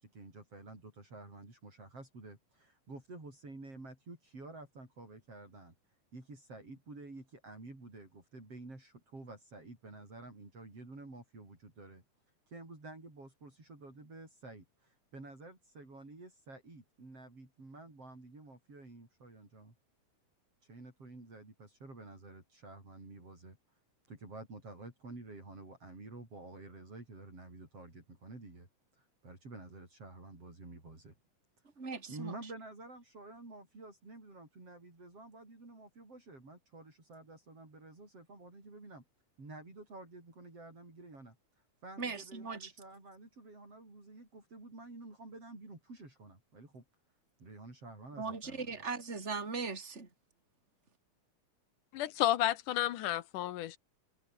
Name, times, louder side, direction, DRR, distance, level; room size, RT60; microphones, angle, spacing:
voice 1, 0.0-5.7 6.1-12.0 12.5-19.7 20.6-23.6 24.1-28.7 29.0-31.1 32.1-39.0 39.4-41.4 41.8-46.8 47.4-48.8, right 2 dB, 50° right, 9.0 m, -50 dB
voice 2, 31.8-32.3 42.0-42.7 48.2-50.1, right 4 dB, 20° right, 3.8 m, -39 dB
voice 3, 52.0-53.8, left 13 dB, 90° left, 2.7 m, -31 dB
omnidirectional pair, 3.5 m